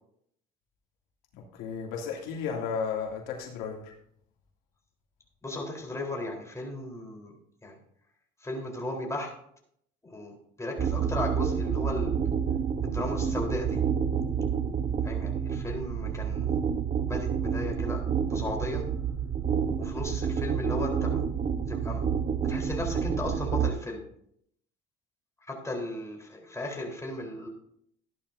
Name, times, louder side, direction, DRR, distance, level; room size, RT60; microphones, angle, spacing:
voice 1, 1.3-3.9, left 6 dB, 85° left, 0 dB, 2.6 m, -34 dB
voice 2, 5.4-7.3 7.6-7.8 8.4-9.3 10.1-12.2 12.8-13.8 15.0-16.5 17.1-18.8 19.8-21.2 21.7-22.0 22.4-24.1 25.5-27.5, left 1 dB, 15° left, 0 dB, 3.8 m, -35 dB
sound 1, 10.8-23.7, right 7 dB, 35° right, 1.0 m, -29 dB
14.0 x 11.0 x 2.7 m, 0.69 s
supercardioid pair, 90°, 21 cm